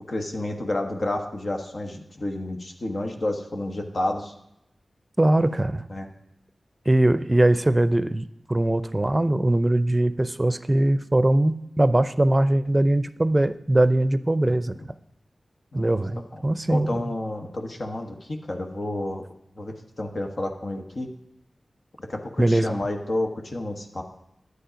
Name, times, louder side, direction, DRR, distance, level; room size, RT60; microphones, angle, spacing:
voice 1, 0.1-4.3 5.9-6.1 14.4-14.6 15.7-16.0 16.7-18.1 18.5-19.2 19.6-21.1 22.1-24.0, left 1 dB, 60° left, 3 dB, 1.2 m, -30 dB
voice 2, 5.2-5.9 6.9-14.7 15.7-17.0 22.4-22.8, right 1 dB, 25° right, 14 dB, 0.5 m, -21 dB
10.0 x 8.1 x 5.1 m, 0.82 s
cardioid pair, 40°, 0 cm